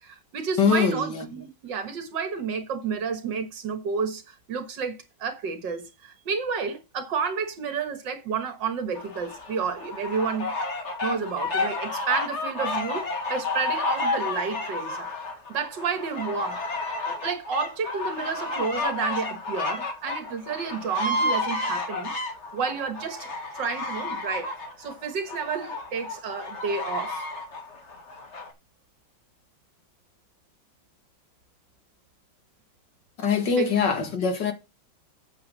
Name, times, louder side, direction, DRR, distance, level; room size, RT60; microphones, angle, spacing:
voice 1, 0.0-10.5 11.0-13.0 13.3-15.1 15.5-16.6 17.1-22.1 22.5-27.2 33.6-33.7, right 5 dB, 65° right, 2.0 m, -30 dB
voice 2, 0.6-1.4 33.2-34.5, left 6 dB, 60° left, 2.4 m, -23 dB
sound 1, 9.0-28.5, left 2 dB, 35° left, 1.9 m, -31 dB
9.0 x 7.6 x 4.1 m
omnidirectional pair, 2.2 m